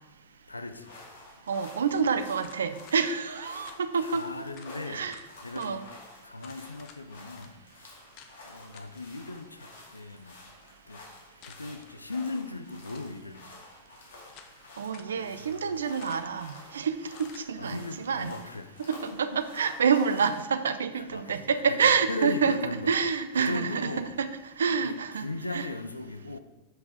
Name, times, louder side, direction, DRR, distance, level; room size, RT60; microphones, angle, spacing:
voice 1, 0.5-0.9 2.0-2.1 3.9-5.1 5.4-5.8 6.2-7.6 8.5-9.7 9.9-10.4 10.9-11.0 11.6-13.4 15.1-15.7 17.6-18.7 19.1-19.4 21.0-21.4 21.7-22.9 23.4-24.1 24.7-26.4, left 2 dB, 80° left, 10 dB, 0.5 m, -37 dB
sound 1, 0.7-20.4, left 2 dB, 60° left, 2.3 m, -50 dB
voice 2, 1.5-4.2 4.9-5.2 5.6-5.8 14.8-18.3 18.9-22.6 22.9-24.3 24.6-25.7, right 6 dB, 70° right, 12 dB, 0.5 m, -28 dB
sound 2, 2.4-3.0 3.6-3.8 4.2-4.3 4.5-4.7 5.1-5.7 6.4-7.0 7.4-7.5 8.2-8.3 8.7-9.0 11.4-11.9 12.8-13.2 13.8-14.6 14.9-15.1 16.0-16.4 17.1-17.5, left 7 dB, 40° left, 0.9 m, -52 dB
7.9 x 6.1 x 5.0 m, 1.1 s
figure-of-eight pair, 90°, 0 cm